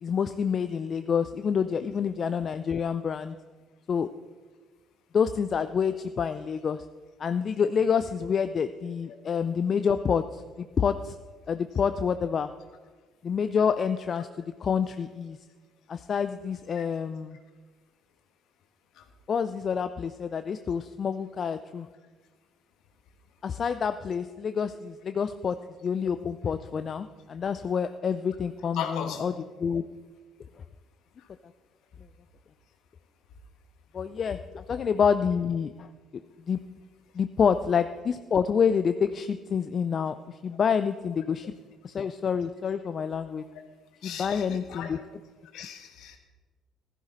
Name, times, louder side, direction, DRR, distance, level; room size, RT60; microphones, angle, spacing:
voice 1, 0.0-3.4 3.9-4.1 5.1-6.8 7.2-11.2 11.5-12.5 13.2-15.4 15.9-17.4 19.3-21.9 23.4-25.6 25.8-29.3 29.6-29.8 33.9-35.9 36.5-36.6 37.1-41.5 41.8-43.4 44.0-45.0, left 6 dB, 45° left, 10 dB, 0.5 m, -27 dB
voice 2, 28.7-29.3 31.2-31.3 34.7-34.8 44.0-45.0 45.5-46.2, left 8 dB, 65° left, 5 dB, 1.6 m, -37 dB
15.0 x 13.0 x 4.0 m, 1.4 s
hypercardioid pair, 50°, 0 cm